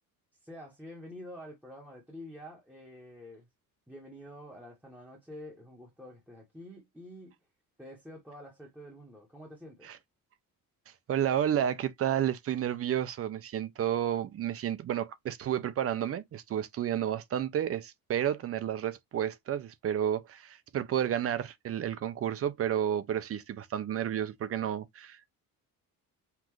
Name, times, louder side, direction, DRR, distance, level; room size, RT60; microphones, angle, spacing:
voice 1, 0.4-3.5 3.9-7.3 7.8-9.9, left 1 dB, 5° right, 1.1 m, -48 dB
voice 2, 11.1-25.3, right 10 dB, 40° right, 0.5 m, -31 dB
5.8 x 2.5 x 3.0 m
cardioid pair, 170°, 36 cm